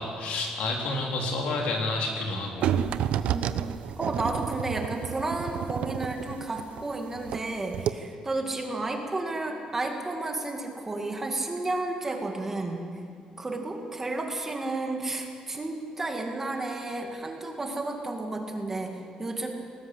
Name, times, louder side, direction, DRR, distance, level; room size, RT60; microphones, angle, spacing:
voice 1, 0.0-2.7, left 2 dB, 75° left, 0 dB, 4.0 m, -29 dB
sound 1, 2.6-7.5 7.7-7.9, right 9 dB, 75° right, 0.8 m, -30 dB
voice 2, 4.0-12.9 13.4-19.5, right 2 dB, 15° right, 2 dB, 2.2 m, -32 dB
19.5 x 18.5 x 8.1 m, 2.3 s
cardioid pair, 165°, 2 cm